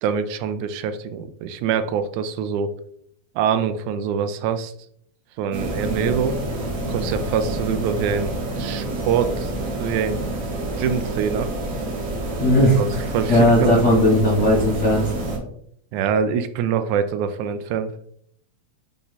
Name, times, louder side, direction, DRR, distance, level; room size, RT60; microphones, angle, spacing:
voice 1, 0.0-2.8 3.4-4.7 5.4-6.4 6.9-9.5 9.8-10.2 10.8-11.5 12.8-12.9 13.1-13.8 15.9-17.9, right 7 dB, 85° right, 10 dB, 2.0 m, -24 dB
sound 1, 5.5-15.4, right 2 dB, 55° right, 2.5 m, -28 dB
voice 2, 12.4-15.1, left 1 dB, 80° left, -5 dB, 0.6 m, -17 dB
7.5 x 3.5 x 4.0 m, 0.67 s
omnidirectional pair, 3.4 m